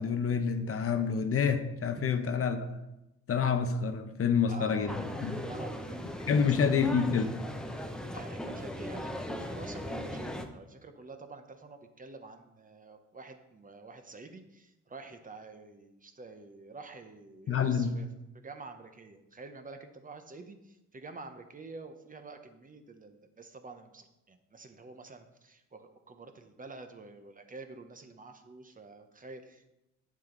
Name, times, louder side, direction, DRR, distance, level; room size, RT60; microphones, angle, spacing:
voice 1, 0.0-2.7 3.3-5.4 6.3-7.3 17.5-17.9, left 6 dB, 50° left, 8 dB, 0.8 m, -28 dB
voice 2, 4.5-5.0 5.5-6.9 7.7-18.1 18.3-29.7, right 3 dB, 25° right, 7 dB, 0.9 m, -48 dB
sound 1, 4.9-10.5, left 1 dB, ahead, 0.8 m, -38 dB
7.9 x 7.4 x 3.9 m, 0.91 s
cardioid pair, 90°, 30 cm